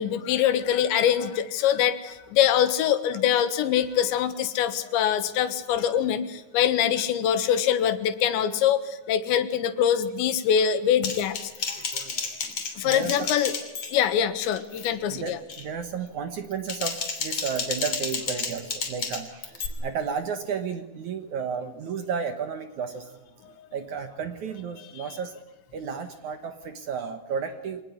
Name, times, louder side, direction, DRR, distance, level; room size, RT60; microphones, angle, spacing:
voice 1, 0.0-11.4 11.7-11.8 12.8-13.5 13.9-15.4 24.8-25.1, left 9 dB, 85° left, 11 dB, 3.7 m, -24 dB
Typing, 11.0-14.2 14.5-14.9 15.3-15.6 16.4-19.7, left 5 dB, 35° left, 3.4 m, -32 dB
voice 2, 11.8-12.2 12.8-13.3 15.1-23.2 23.7-25.3 25.7-27.8, right 6 dB, 60° right, 8 dB, 2.1 m, -33 dB
25.0 x 19.0 x 9.7 m, 0.96 s
omnidirectional pair, 5.1 m